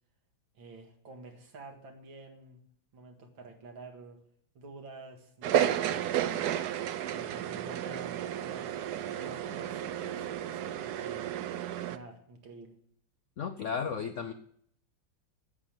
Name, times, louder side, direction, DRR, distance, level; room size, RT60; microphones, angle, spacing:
voice 1, 0.5-2.6 2.9-4.2 4.5-6.4 7.1-8.8 9.1-11.3 11.9-12.7, right 3 dB, 90° right, 3 dB, 2.6 m, -49 dB
sound 1, 5.4-12.0, right 10 dB, 70° right, 1.0 m, -32 dB
voice 2, 13.4-14.3, left 6 dB, 75° left, 8 dB, 0.7 m, -34 dB
9.7 x 7.8 x 9.0 m, 0.66 s
omnidirectional pair, 2.1 m